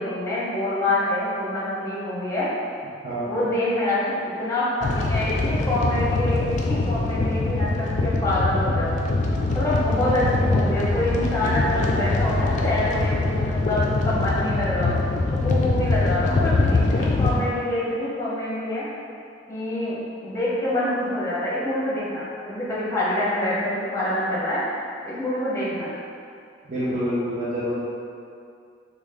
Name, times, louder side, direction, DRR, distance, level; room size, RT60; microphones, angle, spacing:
voice 1, 0.0-2.5 3.1-9.0 9.5-14.9 15.3-18.9 19.5-24.6 25.0-25.9, left 1 dB, 15° left, -8 dB, 0.8 m, -26 dB
voice 2, 3.0-3.5 26.7-27.8, equal, 40° right, -12 dB, 0.6 m, -27 dB
sound 1, 4.8-17.4, left 2 dB, 40° left, 0.3 m, -23 dB
3.1 x 2.3 x 3.5 m, 2.4 s
head